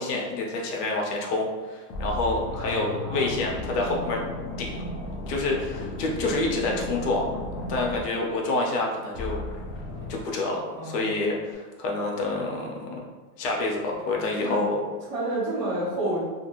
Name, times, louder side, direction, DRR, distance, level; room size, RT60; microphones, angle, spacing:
voice 1, 0.0-4.2 4.6-4.9 5.3-7.3 7.7-9.4 10.1-13.0 13.4-14.8, left 2 dB, 75° left, -1 dB, 0.8 m, -28 dB
sound 1, 1.5-1.6 1.9-8.8 9.1-10.2, left 2 dB, 35° left, 0.5 m, -35 dB
voice 2, 3.0-3.4 10.8-11.1 14.4-14.6 15.1-16.2, right 1 dB, 25° right, -10 dB, 1.1 m, -29 dB
2.5 x 2.2 x 2.9 m, 1.3 s
supercardioid pair, 135°, 48 cm